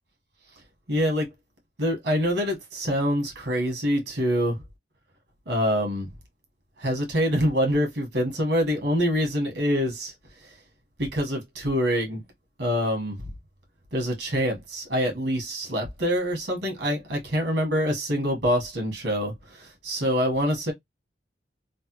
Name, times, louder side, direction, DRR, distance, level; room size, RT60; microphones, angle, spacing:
voice 1, 0.9-1.3 1.8-4.6 5.5-6.1 6.8-10.1 10.4-10.5 11.0-12.2 12.6-13.3 13.9-20.7, equal, 70° right, 1.3 m, -25 dB
3.3 x 2.1 x 2.9 m
head